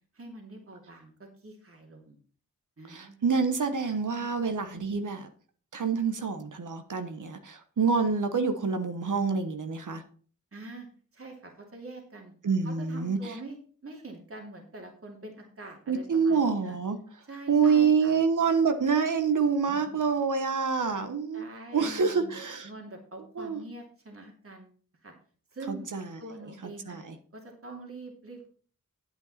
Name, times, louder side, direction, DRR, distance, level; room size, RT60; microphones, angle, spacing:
voice 1, 0.1-1.1 1.4-2.2 2.8-3.2 10.5-10.9 11.1-12.3 12.6-13.6 13.8-16.8 17.2-18.2 19.7-20.1 21.3-22.3 22.6-24.8 25.0-25.1 25.5-25.9 26.2-27.0 27.3-28.5, right 2 dB, 45° right, 2.6 m, -44 dB
voice 2, 2.9-5.3 5.7-10.0 12.4-13.2 15.9-17.0 17.5-21.4 21.7-22.7 23.4-23.6 25.7-26.2 26.9-27.1, right 5 dB, 65° right, 1.2 m, -27 dB
9.5 x 8.1 x 4.3 m
cardioid pair, 45°, 33 cm